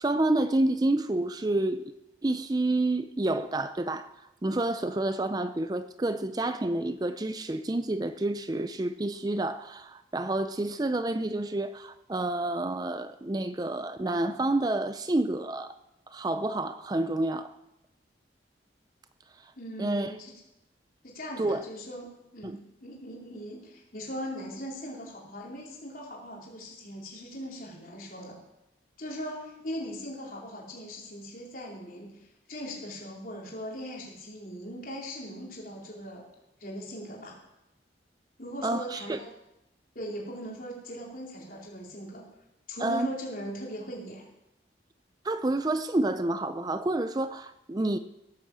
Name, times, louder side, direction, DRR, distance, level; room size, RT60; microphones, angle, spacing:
voice 1, 0.0-1.8 2.2-4.1 4.4-15.7 16.1-17.6 19.4-19.5 19.8-20.1 21.4-21.6 22.4-22.6 38.6-39.2 42.8-43.1 45.2-48.0, right 2 dB, 20° right, 0.4 m, -29 dB
voice 2, 19.6-20.3 21.0-22.1 22.3-28.4 29.0-36.3 36.6-37.4 38.4-39.3 39.9-42.3 42.7-44.2, equal, 50° left, 4.4 m, -40 dB
16.5 x 9.6 x 7.6 m
head